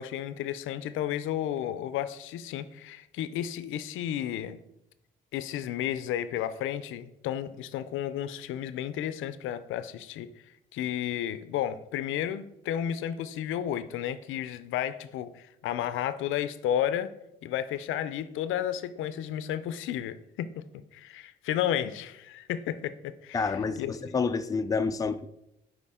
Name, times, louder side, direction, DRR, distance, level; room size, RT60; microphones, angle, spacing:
voice 1, 0.0-4.6 5.3-10.3 10.7-17.1 17.4-24.1, left 10 dB, 85° left, 0.5 m, -32 dB
voice 2, 23.3-25.3, left 5 dB, 20° left, 0.4 m, -28 dB
6.7 x 4.8 x 3.6 m
cardioid pair, 90°, 20 cm